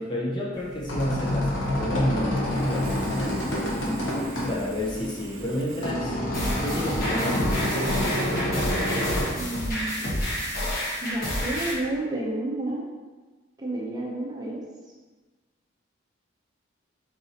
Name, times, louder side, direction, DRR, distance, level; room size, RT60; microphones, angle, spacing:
voice 1, 0.0-4.0 4.5-6.2 6.6-8.4, left 1 dB, 25° left, -4 dB, 0.6 m, -31 dB
sound 1, 0.6-9.3, equal, 80° left, 1.0 m, -28 dB
Sawing, 2.4-5.9, right 1 dB, 90° right, 0.5 m, -43 dB
sound 2, 6.3-11.7, equal, 50° left, 1.2 m, -29 dB
voice 2, 9.4-10.2 11.0-12.9 13.6-14.6, right 2 dB, 20° right, -4 dB, 0.7 m, -31 dB
4.3 x 4.1 x 2.8 m, 1.3 s
head